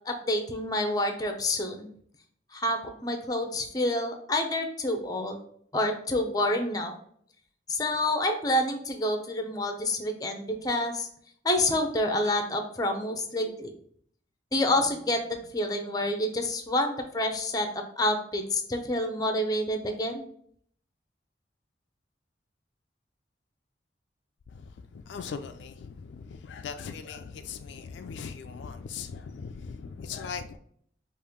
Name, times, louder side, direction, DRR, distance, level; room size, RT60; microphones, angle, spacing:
voice 1, 0.1-1.9 2.5-5.4 5.7-6.9 7.7-11.1 11.4-13.7 14.5-20.3, left 1 dB, 20° left, 0.6 m, -28 dB
voice 2, 25.1-30.6, left 6 dB, 80° left, 0.3 m, -39 dB
5.3 x 2.5 x 3.5 m
head